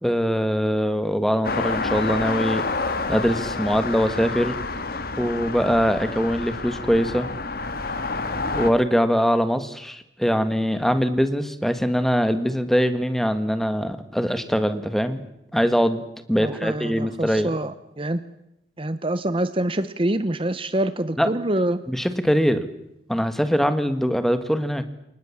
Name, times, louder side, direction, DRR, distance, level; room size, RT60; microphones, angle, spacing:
voice 1, 0.0-4.6 5.2-7.3 8.5-15.2 15.5-16.0 16.3-17.5 21.2-21.3 21.9-22.7 23.1-24.8, equal, ahead, 10 dB, 1.6 m, -22 dB
sound 1, 1.4-8.7, left 3 dB, 55° left, 2.0 m, -28 dB
voice 2, 16.4-18.2 18.8-21.8, right 1 dB, 30° right, 13 dB, 0.9 m, -25 dB
28.5 x 24.0 x 7.3 m, 0.83 s
head